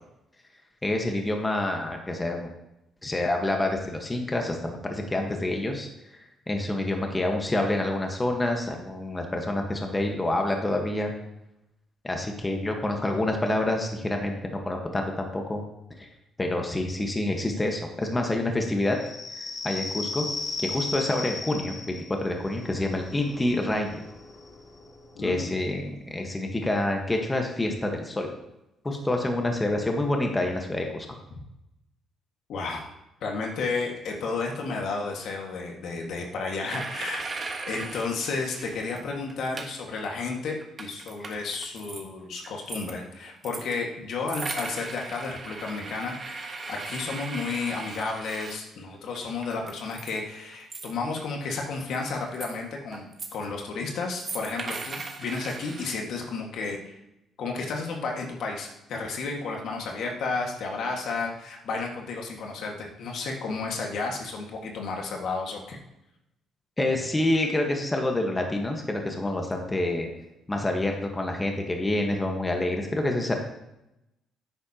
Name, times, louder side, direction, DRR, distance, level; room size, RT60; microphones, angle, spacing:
voice 1, 0.8-2.5 3.0-5.9 6.5-11.1 12.0-15.6 16.0-16.1 16.4-19.0 19.4-20.2 20.6-24.0 25.2-28.3 28.8-31.1 41.2-41.3 66.8-70.1 70.5-73.3, left 1 dB, 15° left, 2 dB, 1.4 m, -27 dB
sound 1, 18.8-26.1, left 3 dB, 55° left, 2.3 m, -37 dB
voice 2, 25.2-25.6 32.5-32.9 33.2-37.2 37.7-57.0 57.4-65.8, left 4 dB, 70° left, 1 dB, 1.8 m, -32 dB
sound 2, 36.7-38.1 38.5-39.0 39.3-40.0 40.4-42.0 42.4-43.8 44.3-48.6 49.1-50.3 50.5-51.4 51.7-52.6 52.9-53.5 54.2-56.0, right 3 dB, 35° right, 1.3 m, -38 dB
10.5 x 9.0 x 2.9 m, 0.88 s
cardioid pair, 95°, 0 cm